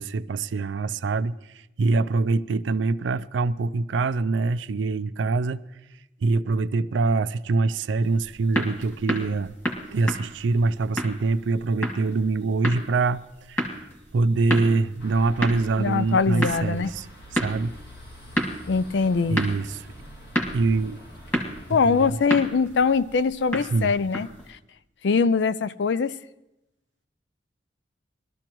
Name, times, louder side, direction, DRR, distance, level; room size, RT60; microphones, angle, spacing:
voice 1, 0.0-1.3 1.8-5.6 6.2-9.5 9.9-13.2 13.5-13.8 14.1-17.1 17.3-17.7 19.2-19.9 20.5-21.0 21.8-22.1 23.7-23.9, right 3 dB, 85° right, 0.4 m, -24 dB
sound 1, 8.0-24.5, equal, 10° left, 1.9 m, -32 dB
sound 2, 15.0-22.1, equal, 60° left, 2.2 m, -45 dB
voice 2, 15.8-16.9 18.7-19.4 21.7-24.3 25.0-26.1, left 5 dB, 75° left, 0.4 m, -22 dB
21.5 x 13.0 x 3.0 m
head